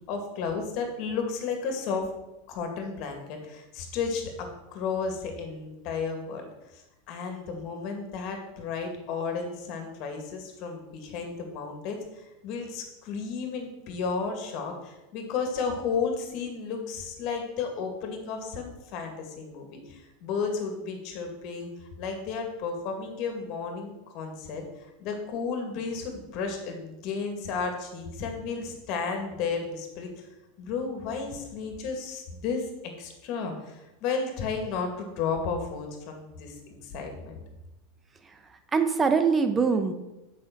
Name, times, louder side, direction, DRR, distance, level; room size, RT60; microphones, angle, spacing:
voice 1, 0.1-2.1 2.5-30.3 30.6-37.4, left 5 dB, 50° left, 4 dB, 2.1 m, -33 dB
voice 2, 38.2-39.9, right 5 dB, 20° right, 8 dB, 0.9 m, -24 dB
7.9 x 5.9 x 6.0 m, 0.98 s
supercardioid pair, 140°, 0 cm